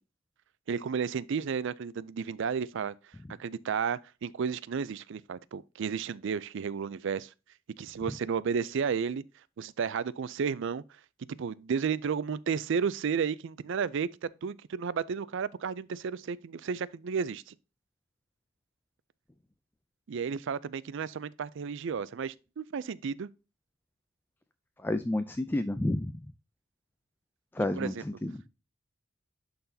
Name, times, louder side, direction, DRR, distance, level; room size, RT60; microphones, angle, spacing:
voice 1, 0.7-2.9 3.4-7.3 7.8-9.2 9.6-10.8 11.4-14.1 14.4-17.5 20.1-23.3 27.6-28.0, right 6 dB, 65° right, 0.4 m, -32 dB
voice 2, 24.8-26.2 27.5-28.5, left 1 dB, 10° left, 0.4 m, -30 dB
11.0 x 3.9 x 2.7 m
head